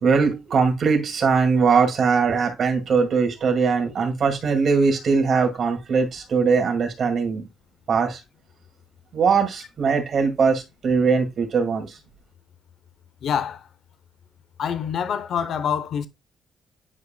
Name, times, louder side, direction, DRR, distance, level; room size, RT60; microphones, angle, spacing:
voice 1, 0.0-7.5 7.9-8.2 9.1-12.0, right 5 dB, 55° right, 2.1 m, -21 dB
voice 2, 13.2-13.7 14.6-16.1, left 8 dB, 65° left, 0.7 m, -26 dB
9.6 x 4.9 x 2.2 m
cardioid pair, 90°, 0 cm